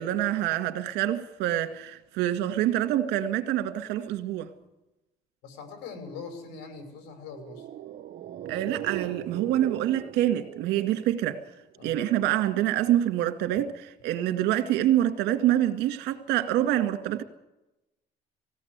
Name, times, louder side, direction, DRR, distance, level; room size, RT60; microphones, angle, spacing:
voice 1, 0.0-4.5 8.5-11.4 11.8-17.2, right 12 dB, 85° right, 2.0 m, -26 dB
voice 2, 5.4-7.7 11.8-11.9, left 5 dB, 90° left, 5.8 m, -42 dB
sound 1, 7.3-11.8 12.1-12.2, right 12 dB, 60° right, 1.2 m, -40 dB
20.0 x 17.0 x 8.1 m
cardioid pair, 110°, 17 cm